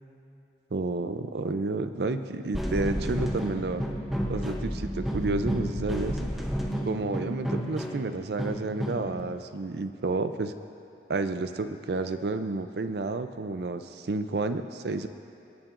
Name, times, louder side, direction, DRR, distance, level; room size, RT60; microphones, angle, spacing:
voice 1, 0.7-3.8 4.3-6.2 6.9-10.5 11.1-15.1, right 3 dB, 70° right, 10 dB, 0.5 m, -30 dB
sound 1, 2.5-9.2, equal, ahead, 0.7 m, -31 dB
24.5 x 8.8 x 2.5 m, 2.9 s
head